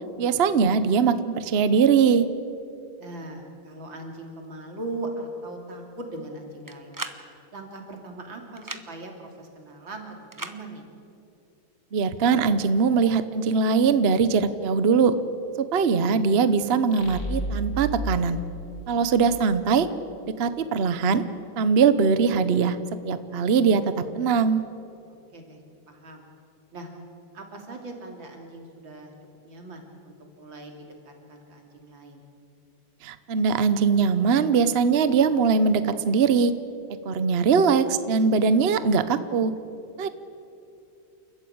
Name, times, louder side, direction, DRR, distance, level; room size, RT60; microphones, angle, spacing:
voice 1, 0.2-2.3 11.9-15.1 15.6-18.4 18.9-19.9 20.2-21.2 21.6-22.8 23.0-24.6 33.0-36.5 37.0-39.5 40.0-40.1, right 5 dB, 50° right, 12 dB, 0.8 m, -21 dB
voice 2, 3.0-7.0 7.5-10.1 10.4-10.9 25.3-25.6 25.9-26.2 26.7-26.9 27.3-29.1 29.4-32.2, right 2 dB, 75° right, 2 dB, 3.7 m, -39 dB
sound 1, 6.7-7.2 8.6-8.8 10.3-10.6, right 2 dB, 20° right, 0.5 m, -35 dB
sound 2, 16.9-19.5, right 1 dB, 50° left, 3.4 m, -32 dB
29.5 x 14.0 x 8.7 m, 2.7 s
omnidirectional pair, 2.1 m